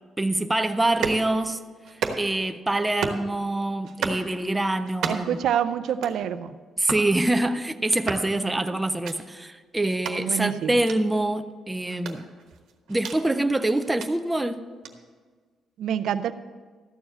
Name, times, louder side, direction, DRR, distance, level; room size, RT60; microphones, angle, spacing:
voice 1, 0.2-1.6 2.2-5.4 6.8-12.2 12.9-14.7, right 1 dB, 10° right, 8 dB, 0.4 m, -25 dB
sound 1, 0.9-1.2 1.8-2.4 2.8-3.3 3.8-4.2 4.8-5.4 5.8-6.2 6.8-7.1 7.8-8.3 8.9-9.2 9.9-10.2 10.8-11.0 11.9-13.2 13.8-14.1 14.8-14.9, right 6 dB, 85° right, 1.2 m, -32 dB
voice 2, 5.1-6.5 8.4-8.5 10.2-10.8 15.8-16.3, right 9 dB, 70° right, 12 dB, 0.5 m, -27 dB
13.5 x 4.8 x 8.7 m, 1.5 s
cardioid pair, 170°, 0 cm